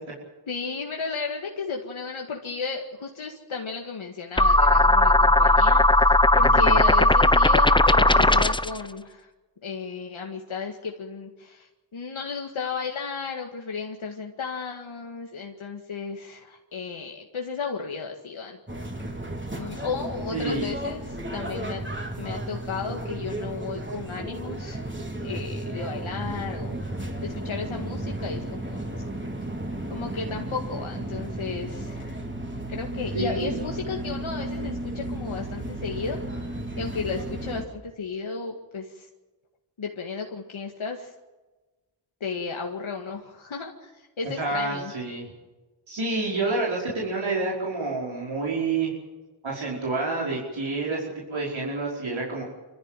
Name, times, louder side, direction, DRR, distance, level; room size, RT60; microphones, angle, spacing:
voice 1, 0.5-9.3 9.6-18.6 19.5-21.8 22.2-24.8 25.2-29.0 29.9-32.2 32.7-39.1 39.8-41.1 42.2-44.9, left 4 dB, 90° left, 1 dB, 2.0 m, -34 dB
sound 1, 4.4-8.8, left 2 dB, 10° left, 0.7 m, -17 dB
voice 2, 6.4-6.8 20.3-20.7 33.1-33.7 44.3-45.2 45.9-48.9 49.4-52.4, right 3 dB, 80° right, -4 dB, 5.3 m, -28 dB
sound 2, 18.7-37.6, right 1 dB, 25° right, 4.1 m, -34 dB
25.0 x 15.0 x 9.1 m, 1.2 s
cardioid pair, 40°, 47 cm